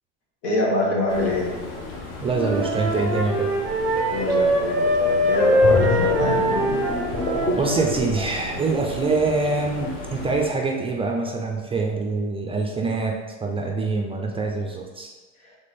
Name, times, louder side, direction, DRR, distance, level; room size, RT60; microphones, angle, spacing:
voice 1, 0.4-1.6 4.1-6.4, left 2 dB, 80° left, -2 dB, 1.4 m, -24 dB
sound 1, 1.1-10.5, left 2 dB, 55° left, 1.2 m, -36 dB
voice 2, 2.2-3.5 7.6-15.1, right 3 dB, 15° right, 1 dB, 0.4 m, -25 dB
Wind instrument woodwind instrument, 2.3-8.0, equal, ahead, 1.4 m, -22 dB
sound 2, 5.6-9.2 9.6-9.8, left 1 dB, 25° left, 0.6 m, -27 dB
3.5 x 3.3 x 4.2 m, 1.3 s
supercardioid pair, 115°, 36 cm